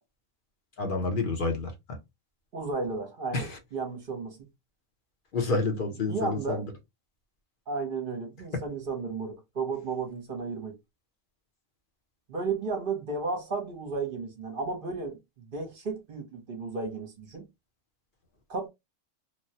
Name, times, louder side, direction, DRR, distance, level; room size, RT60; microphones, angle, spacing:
voice 1, 0.8-2.0 3.3-3.6 5.3-6.6 8.5-8.6, left 3 dB, 45° left, 0.9 m, -29 dB
voice 2, 2.5-4.4 6.1-6.7 7.7-10.8 12.3-17.4 18.5-18.7, right 4 dB, 50° right, 1.0 m, -33 dB
3.2 x 2.2 x 2.8 m
omnidirectional pair, 1.3 m